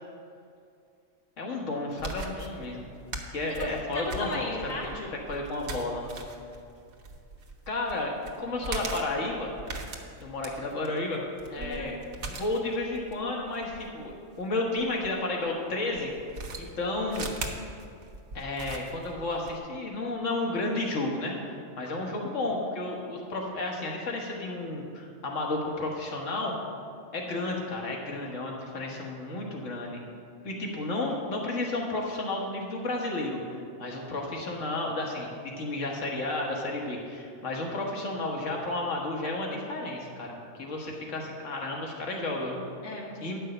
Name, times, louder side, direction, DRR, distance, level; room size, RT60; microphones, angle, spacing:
voice 1, 1.4-2.8 3.3-4.4 5.3-6.1 7.7-9.5 10.2-11.2 11.5-11.9 12.3-16.1 16.6-17.3 18.3-26.5 27.1-30.0 30.4-42.6 43.2-43.4, left 2 dB, 65° left, -1 dB, 1.8 m, -32 dB
sound 1, 1.9-15.1 15.9-19.6, right 3 dB, 90° right, 1.4 m, -40 dB
voice 2, 3.6-5.1 11.6-11.9 42.8-43.3, left 1 dB, 80° left, -3 dB, 1.6 m, -36 dB
10.0 x 5.5 x 7.6 m, 2.4 s
omnidirectional pair, 1.4 m